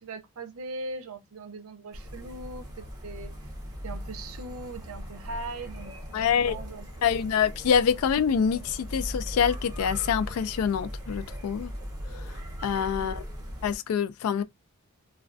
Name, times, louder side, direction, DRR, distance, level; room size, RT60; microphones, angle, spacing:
voice 1, 0.0-3.3 3.8-7.1 13.0-13.1, right 2 dB, 80° right, 0.5 m, -40 dB
sound 1, 1.9-13.8, equal, 20° right, 0.6 m, -39 dB
voice 2, 6.1-6.6 7.0-11.7 12.6-13.2 13.6-14.4, left 7 dB, 85° left, 0.3 m, -25 dB
2.3 x 2.3 x 2.4 m
head